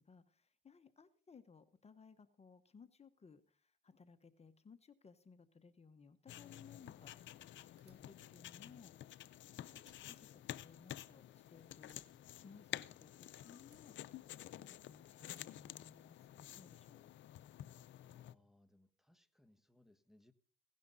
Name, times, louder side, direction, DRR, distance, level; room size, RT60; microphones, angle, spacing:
voice 1, 0.0-8.9 9.6-9.8 10.1-12.0 12.3-13.1 13.4-17.0, left 5 dB, 30° left, 10 dB, 1.0 m, -61 dB
sound 1, 6.3-18.3, left 13 dB, 70° left, 0.6 m, -51 dB
Fire, 7.8-9.4 9.7-11.4 11.8-13.2 13.6-14.8 15.3-16.4, right 6 dB, 60° right, 3.9 m, -74 dB
voice 2, 18.0-20.3, left 1 dB, ahead, 7 dB, 1.2 m, -69 dB
16.5 x 12.0 x 4.0 m, 0.42 s
cardioid pair, 90°, 20 cm